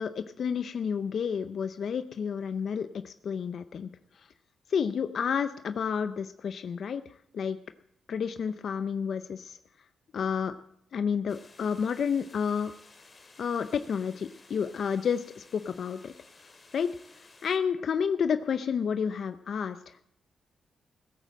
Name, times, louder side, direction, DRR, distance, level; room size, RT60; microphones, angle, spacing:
voice 1, 0.0-3.9 4.2-4.3 4.7-7.0 7.3-7.6 8.1-9.6 10.1-10.5 10.9-12.7 13.4-16.1 16.7-16.9 17.4-20.0, left 7 dB, 65° left, 10 dB, 0.6 m, -30 dB
sound 1, 11.3-17.6, left 3 dB, 35° left, 2.3 m, -56 dB
16.5 x 8.2 x 7.6 m, 0.73 s
cardioid pair, 65°, 0 cm